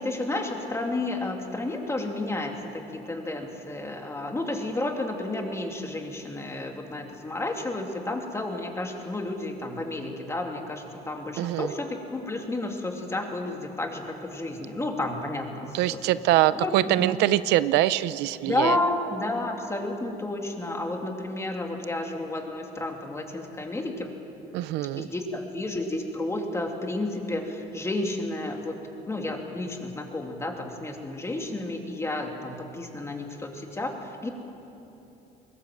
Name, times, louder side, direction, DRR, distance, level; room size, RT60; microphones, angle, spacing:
voice 1, 0.0-16.0 16.5-17.2 18.4-24.1 25.0-28.8 29.1-34.3, left 2 dB, 15° left, 2 dB, 2.7 m, -31 dB
voice 2, 11.4-11.7 15.7-18.8 24.5-25.1, right 15 dB, 90° right, 16 dB, 0.5 m, -23 dB
21.5 x 18.5 x 7.8 m, 3.0 s
cardioid pair, 110°, 17 cm